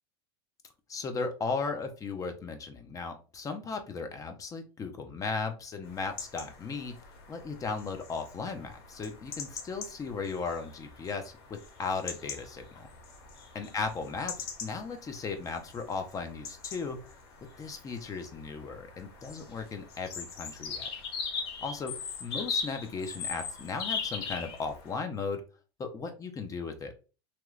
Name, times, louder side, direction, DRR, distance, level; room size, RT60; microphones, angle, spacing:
voice 1, 0.9-7.0 7.3-12.9 13.5-17.0 17.6-20.9 21.6-21.9 22.2-25.4 25.8-26.9, left 4 dB, 25° left, 6 dB, 0.6 m, -36 dB
sound 1, 5.8-25.0, left 5 dB, 75° left, 0.9 m, -41 dB
2.9 x 2.3 x 3.2 m, 0.34 s
supercardioid pair, 115°, 14 cm